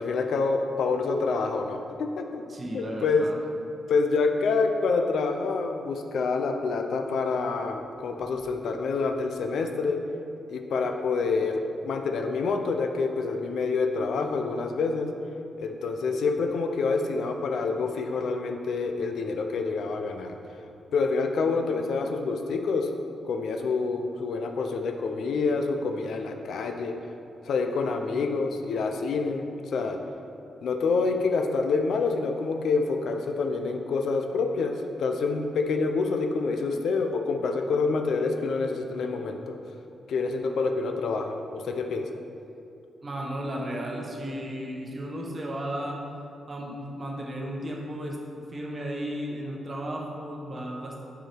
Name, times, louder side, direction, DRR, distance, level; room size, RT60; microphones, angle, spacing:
voice 1, 0.0-2.4 2.7-3.3 3.9-10.0 10.5-15.1 15.6-20.4 20.9-22.9 23.3-27.0 27.5-30.0 30.6-39.6 40.1-42.1, left 4 dB, 70° left, 5 dB, 0.5 m, -27 dB
voice 2, 2.5-3.4 43.0-46.0 46.5-48.2 48.5-51.0, right 1 dB, 25° right, -1 dB, 0.9 m, -34 dB
7.9 x 4.8 x 4.4 m, 2.7 s
wide cardioid pair, 180°, 0 cm